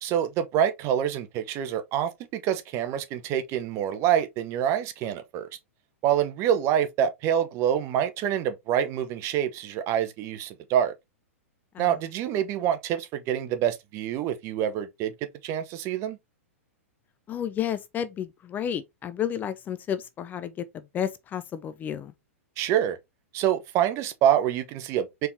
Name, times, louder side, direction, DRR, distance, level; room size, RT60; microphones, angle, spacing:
voice 1, 0.0-5.5 6.0-10.9 11.8-15.1 15.4-16.2 22.6-23.0 23.3-25.3, right 10 dB, 35° right, 0.8 m, -26 dB
voice 2, 17.3-22.1, left 9 dB, 25° left, 0.4 m, -31 dB
4.4 x 3.6 x 2.7 m
hypercardioid pair, 110°, 8 cm